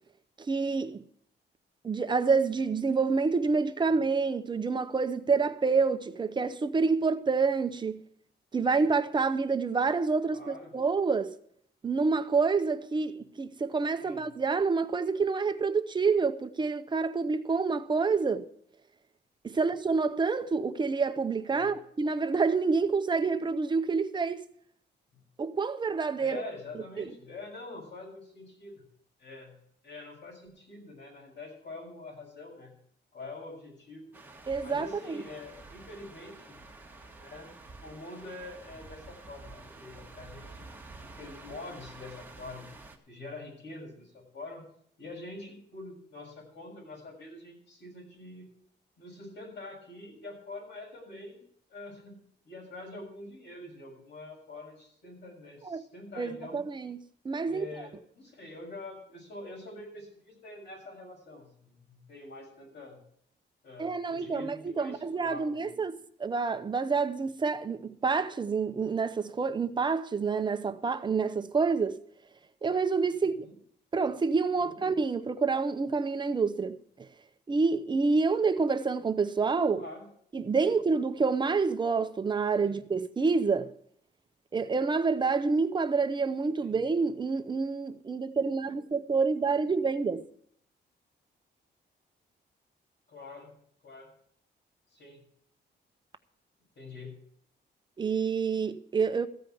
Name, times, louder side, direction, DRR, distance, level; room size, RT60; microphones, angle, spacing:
voice 1, 0.5-1.0 1.8-8.0 8.5-11.3 11.8-18.5 19.4-24.4 25.4-26.4 26.7-27.1 34.5-35.2 55.7-55.8 56.2-57.0 57.2-57.7 63.8-72.0 72.6-73.3 73.9-76.8 77.5-79.8 80.3-83.7 84.5-90.2 98.0-99.3, right 4 dB, 25° right, 0.6 m, -28 dB
voice 2, 10.3-10.7 14.0-14.2 19.5-19.6 21.5-21.7 25.1-25.2 26.2-28.8 29.2-29.5 29.8-32.7 33.1-34.1 34.6-36.6 37.2-37.5 37.8-40.7 41.0-42.7 43.1-44.7 45.0-48.5 49.0-51.4 51.7-56.6 57.4-63.0 63.6-65.8 73.1-73.5 74.5-74.8 79.7-80.1 80.6-80.7 82.6-82.8 86.6-86.8 93.1-93.5 93.8-94.1 94.9-95.2 96.7-97.1, left 2 dB, 75° left, 6.8 m, -45 dB
sound 1, 34.1-43.0, right 3 dB, 10° right, 1.3 m, -49 dB
14.5 x 5.1 x 9.2 m
wide cardioid pair, 150°, 18 cm